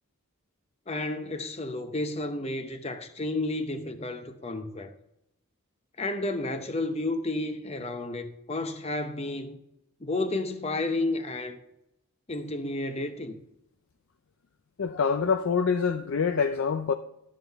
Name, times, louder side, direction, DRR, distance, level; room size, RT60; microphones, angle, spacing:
voice 1, 0.9-4.9 6.0-9.6 10.0-11.6 12.3-13.4, left 2 dB, 30° left, 0.7 m, -31 dB
voice 2, 14.8-16.9, left 6 dB, 60° left, 0.4 m, -25 dB
11.0 x 7.6 x 3.4 m
head